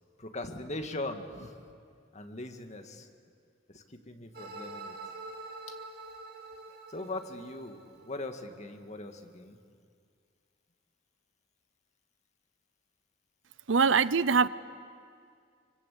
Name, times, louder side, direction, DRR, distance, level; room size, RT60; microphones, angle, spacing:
voice 1, 0.2-1.5 2.1-3.1 3.7-5.0 5.7-5.8 6.7-9.6, left 2 dB, 35° left, 6 dB, 2.0 m, -40 dB
sound 1, 4.3-8.3, right 3 dB, 50° right, 2.5 m, -45 dB
voice 2, 13.7-14.5, right 5 dB, 70° right, 17 dB, 0.7 m, -23 dB
26.0 x 24.5 x 8.5 m, 2.2 s
head